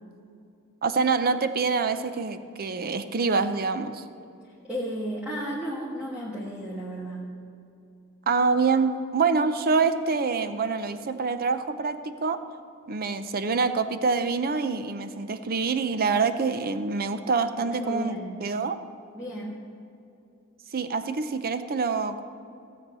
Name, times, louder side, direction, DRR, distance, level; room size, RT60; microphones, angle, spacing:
voice 1, 0.8-4.0 8.3-12.4 12.9-18.2 18.4-18.8 20.7-22.2, right 4 dB, 40° right, 10 dB, 0.6 m, -26 dB
voice 2, 4.5-7.3 17.6-18.4 19.1-19.7, equal, 5° right, -6 dB, 1.4 m, -34 dB
16.0 x 7.8 x 5.5 m, 2.6 s
head